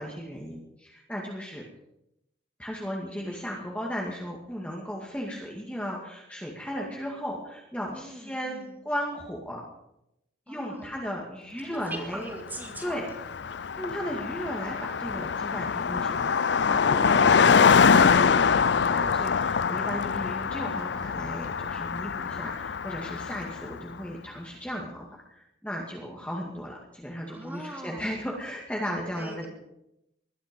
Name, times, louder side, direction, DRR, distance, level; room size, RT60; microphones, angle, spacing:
voice 1, 0.0-1.6 2.6-9.6 10.5-12.2 12.8-13.1 13.8-16.3 16.6-29.5, equal, 5° left, -2 dB, 2.2 m, -36 dB
voice 2, 7.9-8.8 10.5-10.9 11.6-13.1 27.3-28.2 28.8-29.5, right 1 dB, 10° right, 1 dB, 2.9 m, -41 dB
Car passing by, 12.5-12.6 12.8-23.8, left 6 dB, 65° left, 0.5 m, -24 dB
20.5 x 12.5 x 5.4 m, 0.83 s
head